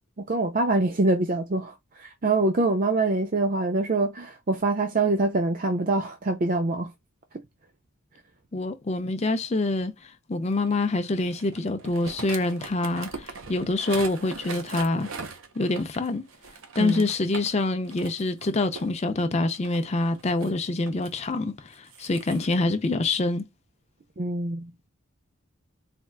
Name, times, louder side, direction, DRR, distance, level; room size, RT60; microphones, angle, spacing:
voice 1, 0.3-6.9 16.8-17.0 24.2-24.7, right 2 dB, 40° right, 0.5 m, -25 dB
voice 2, 8.5-15.1 15.6-16.2 16.8-23.4, left 2 dB, 30° left, 0.5 m, -26 dB
sound 1, 10.7-17.5 17.9-18.9 19.5-21.1 21.7-22.4, right 4 dB, 75° right, 0.8 m, -40 dB
4.2 x 2.4 x 2.3 m
head